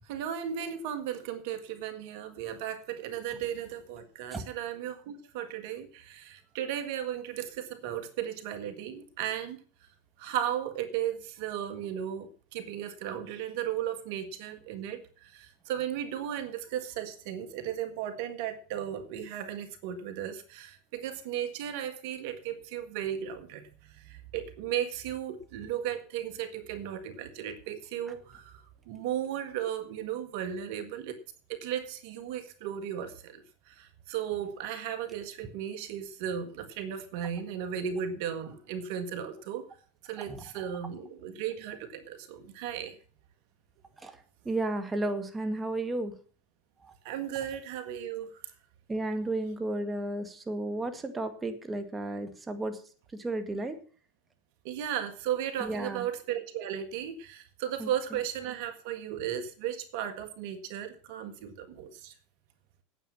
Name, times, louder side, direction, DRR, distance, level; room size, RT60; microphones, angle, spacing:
voice 1, 0.1-9.6 10.2-28.6 28.9-31.2 31.5-39.7 40.0-43.0 47.0-48.5 54.6-62.1, right 9 dB, 65° right, 9 dB, 1.7 m, -35 dB
voice 2, 44.5-46.1 46.8-46.9 48.9-52.8 53.1-53.8 55.6-56.0 57.8-57.9, right 2 dB, 15° right, 7 dB, 1.9 m, -33 dB
9.1 x 9.0 x 7.3 m, 0.41 s
hypercardioid pair, 95°, 0 cm